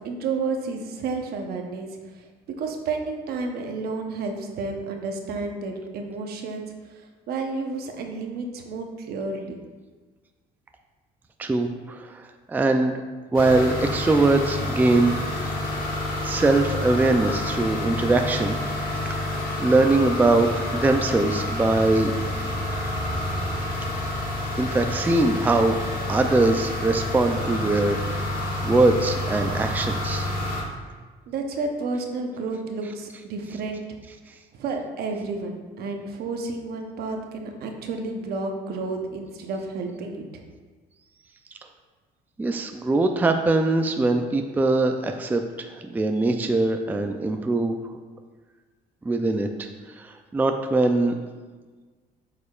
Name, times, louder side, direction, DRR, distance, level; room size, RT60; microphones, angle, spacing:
voice 1, 0.0-2.2 2.6-6.7 7.3-9.6 31.3-33.8 34.5-35.5 35.8-40.4, right 3 dB, 70° right, 3 dB, 0.9 m, -31 dB
voice 2, 11.4-12.2 12.5-12.9 13.3-15.1 16.2-18.6 19.1-22.1 24.6-25.8 26.1-28.3 28.6-30.3 42.4-47.7 49.1-49.7 50.0-51.1, right 2 dB, 10° right, 5 dB, 0.4 m, -22 dB
sound 1, 13.3-30.6, left 1 dB, 60° left, 1.4 m, -28 dB
8.2 x 4.9 x 2.4 m, 1.4 s
cardioid pair, 110°, 17 cm